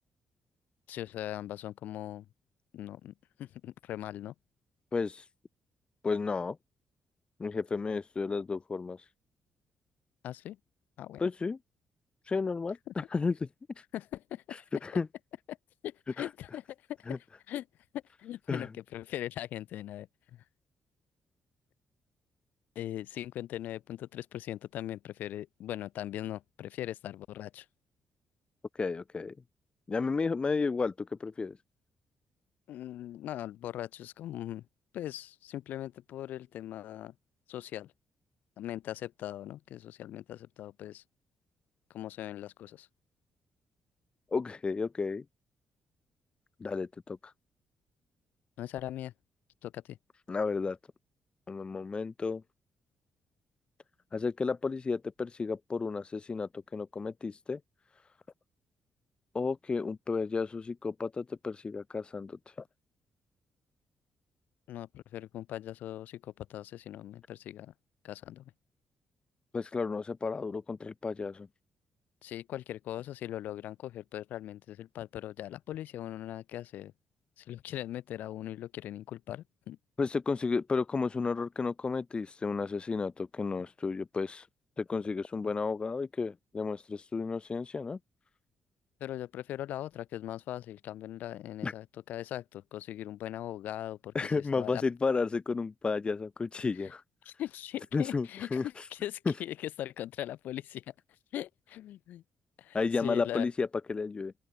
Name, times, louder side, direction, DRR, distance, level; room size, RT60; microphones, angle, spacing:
voice 1, 0.9-2.3 2.7-3.1 3.4-4.3 10.2-10.6 11.0-11.2 12.9-13.0 13.9-14.6 15.5-15.6 15.8-16.6 17.5-17.7 17.9-20.4 22.8-27.7 32.7-34.7 34.9-37.1 37.5-37.9 38.6-41.0 41.9-42.9 48.6-49.1 49.6-50.0 64.7-67.7 68.0-68.5 72.2-76.9 77.4-79.8 89.0-94.3 94.6-94.8 97.3-100.9 101.3-102.2 102.6-103.5, left 12 dB, 75° left, 2.2 m, -40 dB
voice 2, 4.9-5.3 6.0-6.6 7.4-9.0 11.2-11.6 12.3-13.5 14.8-15.1 16.2-16.3 17.1-17.2 18.5-18.7 28.7-29.3 29.9-31.6 44.3-45.2 46.6-47.3 50.3-50.8 51.5-52.4 54.1-57.6 59.3-62.6 69.5-71.5 80.0-84.5 84.8-88.0 91.6-91.7 94.1-97.0 97.9-98.9 99.3-99.4 102.7-104.3, left 4 dB, 35° left, 1.0 m, -32 dB
open air
supercardioid pair, 55°, 3 cm